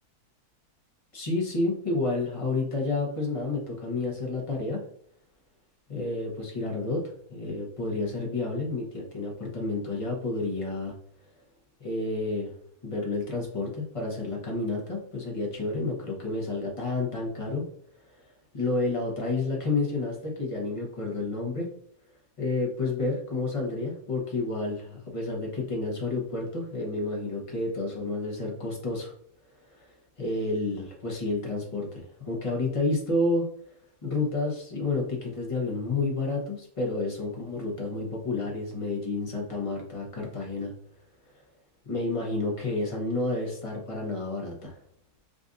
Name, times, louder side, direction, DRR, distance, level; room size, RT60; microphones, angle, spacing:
voice 1, 1.1-4.8 5.9-7.0 7.3-10.9 11.8-12.5 12.8-17.6 18.5-21.7 22.4-29.1 29.7-29.9 30.2-33.5 34.0-40.7 41.8-44.8, left 2 dB, 30° left, -2 dB, 0.7 m, -30 dB
5.0 x 2.4 x 2.5 m, 0.65 s
omnidirectional pair, 1.7 m